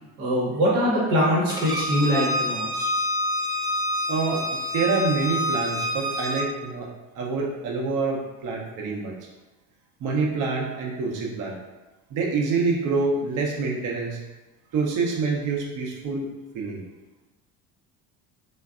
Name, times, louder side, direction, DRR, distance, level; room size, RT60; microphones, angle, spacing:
voice 1, 0.2-2.9, equal, 75° right, -6 dB, 1.0 m, -23 dB
Bowed string instrument, 1.5-6.5, left 1 dB, 10° right, 0.4 m, -27 dB
voice 2, 4.1-6.9 7.1-9.2 10.0-11.6 12.1-14.2 14.7-16.8, right 4 dB, 50° right, -1 dB, 0.7 m, -26 dB
3.3 x 2.2 x 2.4 m, 1.1 s
hypercardioid pair, 75°, 40 cm